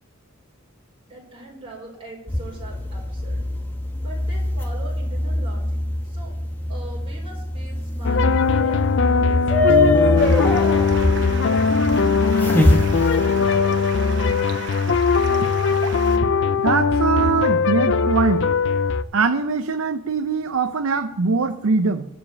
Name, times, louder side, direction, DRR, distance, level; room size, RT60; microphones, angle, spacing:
voice 1, 1.0-3.4 4.0-6.3 6.7-8.8 9.1-9.8, right 1 dB, 25° right, -2 dB, 4.7 m, -41 dB
sound 1, 2.3-13.6, left 1 dB, 10° left, 1.2 m, -23 dB
sound 2, 8.0-19.0, left 4 dB, 60° left, 0.5 m, -20 dB
Stream, 10.2-16.2, right 5 dB, 55° right, 1.1 m, -35 dB
voice 2, 16.6-18.5 19.1-22.1, right 4 dB, 80° right, 8 dB, 0.6 m, -22 dB
12.0 x 5.2 x 8.5 m, 0.77 s
head